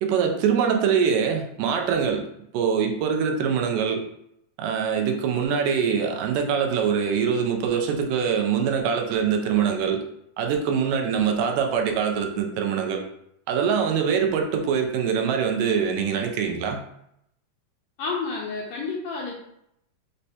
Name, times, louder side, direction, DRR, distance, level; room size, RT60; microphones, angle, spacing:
voice 1, 0.0-2.3 2.5-4.0 4.6-10.0 10.4-13.0 13.5-16.8, right 7 dB, 90° right, 3 dB, 2.3 m, -23 dB
voice 2, 18.0-19.3, left 4 dB, 80° left, -2 dB, 1.6 m, -30 dB
5.5 x 3.2 x 2.8 m, 0.77 s
omnidirectional pair, 3.7 m